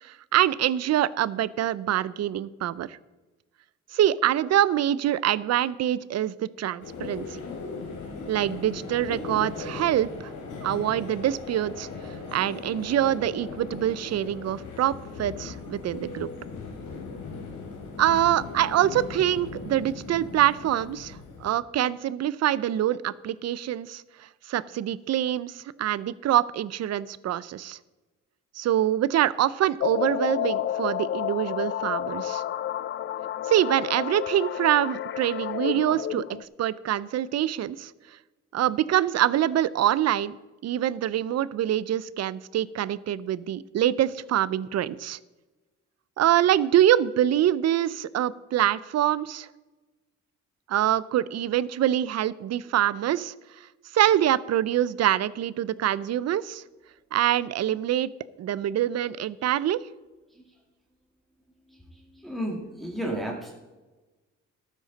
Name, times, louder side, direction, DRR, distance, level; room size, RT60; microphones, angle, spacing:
voice 1, 0.0-3.0 3.9-7.4 8.3-10.1 10.6-11.9 12.3-14.9 15.2-16.3 18.0-24.0 24.5-27.8 28.6-32.4 33.5-37.9 38.5-40.4 40.6-45.2 46.2-49.5 50.7-53.3 53.9-56.6 57.1-58.1 58.4-59.8, right 12 dB, 60° right, 19 dB, 0.5 m, -25 dB
sound 1, 6.8-21.5, left 4 dB, 80° left, 2.9 m, -38 dB
sound 2, 29.8-36.4, left 11 dB, 40° left, 0.4 m, -30 dB
voice 2, 61.7-63.5, right 1 dB, ahead, -2 dB, 2.3 m, -33 dB
12.5 x 9.2 x 4.0 m, 1.2 s
cardioid pair, 90°, 30 cm